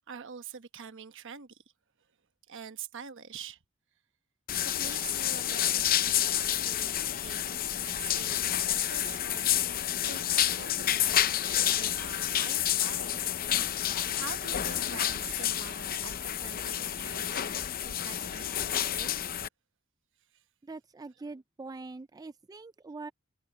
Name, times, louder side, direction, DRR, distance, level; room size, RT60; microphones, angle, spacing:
voice 1, 0.0-1.6 2.5-3.6 4.6-13.3 13.6-19.2 20.3-20.4, right 6 dB, 60° right, 1.1 m, -46 dB
sound 1, 4.5-19.5, left 11 dB, 45° left, 0.6 m, -29 dB
voice 2, 20.6-23.1, right 3 dB, 20° right, 0.3 m, -43 dB
head